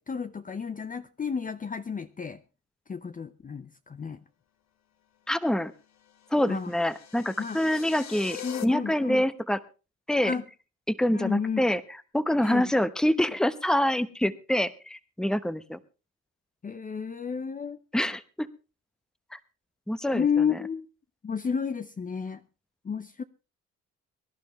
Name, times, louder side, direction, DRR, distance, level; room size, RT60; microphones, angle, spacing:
voice 1, 0.0-2.4 2.9-4.2 6.5-6.7 7.4-7.6 8.4-9.2 10.2-10.4 11.1-11.6 12.4-12.7 16.6-17.8 20.1-20.9 21.2-22.4 22.8-23.2, left 6 dB, 25° left, 0.7 m, -31 dB
voice 2, 5.3-5.7 6.3-9.6 10.1-10.4 10.9-11.8 12.1-15.8 17.9-18.5 19.3-19.4 19.9-20.2 20.5-20.6, left 1 dB, ahead, 0.9 m, -26 dB
sound 1, 6.1-8.6, left 11 dB, 60° left, 1.5 m, -42 dB
23.0 x 11.5 x 3.1 m
cardioid pair, 90°, 30 cm